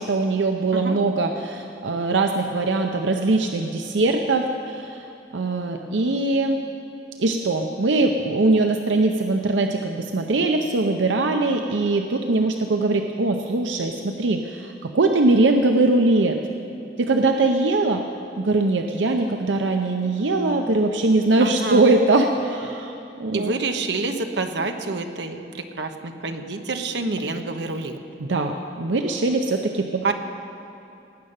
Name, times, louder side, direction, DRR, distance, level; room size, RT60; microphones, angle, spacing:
voice 1, 0.0-5.1 5.3-6.6 7.2-16.4 17.0-18.0 18.4-23.5 28.2-30.1, right 2 dB, 90° right, 4 dB, 0.7 m, -21 dB
voice 2, 21.4-21.8 23.3-28.0 30.0-30.1, right 3 dB, 70° right, 6 dB, 1.0 m, -27 dB
18.0 x 6.6 x 8.9 m, 2.8 s
head